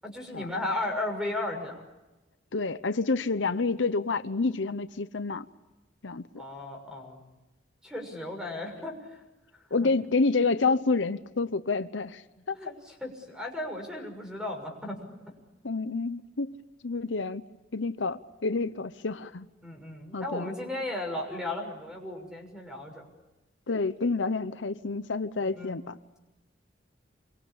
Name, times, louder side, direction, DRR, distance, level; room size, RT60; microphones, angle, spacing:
voice 1, 0.0-1.8 6.4-7.2 7.8-9.2 9.7-9.9 12.5-15.1 19.6-23.1 25.4-25.8, left 2 dB, 5° right, 6.4 m, -35 dB
voice 2, 2.5-5.5 6.0-6.3 9.7-12.2 12.5-12.6 15.6-16.6 16.8-17.4 17.7-19.5 20.1-20.5 23.7-26.0, left 3 dB, 85° left, 0.9 m, -28 dB
27.0 x 24.0 x 8.6 m
head